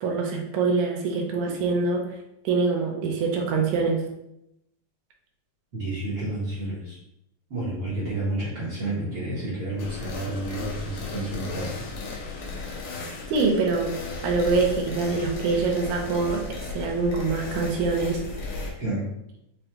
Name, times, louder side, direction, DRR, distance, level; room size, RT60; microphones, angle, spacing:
voice 1, 0.0-2.1 2.4-4.0 13.3-14.0 14.2-18.2 18.5-18.7, right 4 dB, 75° right, 1 dB, 2.1 m, -25 dB
voice 2, 5.7-7.0 7.5-11.9 18.8-19.1, right 1 dB, 55° right, -10 dB, 1.7 m, -30 dB
sound 1, 9.8-18.7, left 3 dB, 85° left, 1.3 m, -35 dB
5.9 x 2.6 x 3.3 m, 0.81 s
omnidirectional pair, 3.7 m